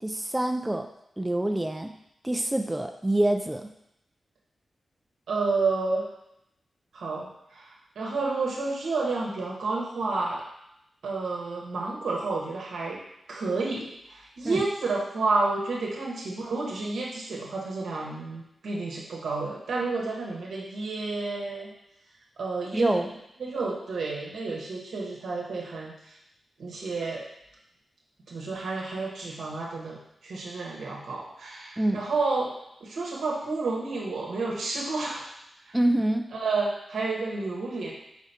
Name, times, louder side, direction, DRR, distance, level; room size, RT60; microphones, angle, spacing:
voice 1, 0.0-0.9 1.2-1.9 2.2-3.7 14.4-14.6 22.7-23.1 31.8-32.0 35.7-36.3, right 1 dB, 15° right, 5 dB, 0.3 m, -26 dB
voice 2, 5.3-6.1 6.9-10.4 11.0-13.0 13.3-21.7 22.4-23.0 23.4-26.2 26.6-27.2 28.3-32.5 32.8-35.3 35.6-35.8 36.3-37.9, right 3 dB, 90° right, -3 dB, 0.9 m, -30 dB
4.9 x 3.2 x 2.7 m, 0.81 s
cardioid pair, 55°, 0 cm